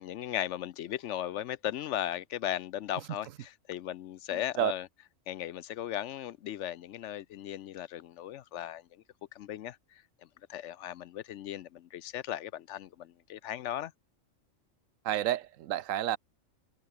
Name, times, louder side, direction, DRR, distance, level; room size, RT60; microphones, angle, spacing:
voice 1, 0.0-4.9 5.3-8.8 9.3-10.0 10.5-13.9, left 12 dB, 70° left, 0.9 m, -37 dB
voice 2, 15.1-16.2, right 12 dB, 80° right, 1.0 m, -29 dB
omnidirectional pair, 1.4 m